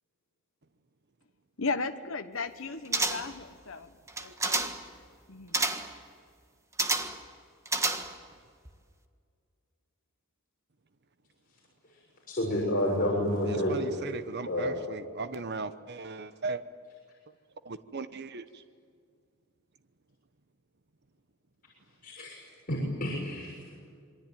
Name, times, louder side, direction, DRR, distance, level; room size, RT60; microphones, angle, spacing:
voice 1, 1.6-3.9 4.2-4.7 5.3-5.6, left 3 dB, 75° left, 7 dB, 1.2 m, -35 dB
sound 1, 2.9-3.4 4.1-4.9 5.5-6.0 6.8-7.2 7.7-8.3 8.6-8.7, right 3 dB, 15° right, 1.4 m, -29 dB
voice 2, 12.3-13.8 14.4-14.7 22.0-22.4 22.7-23.7, left 1 dB, 45° left, -4 dB, 6.7 m, -29 dB
voice 3, 13.4-16.6 17.6-18.6, right 3 dB, 55° right, 11 dB, 1.0 m, -37 dB
27.0 x 23.0 x 9.2 m, 2.1 s
head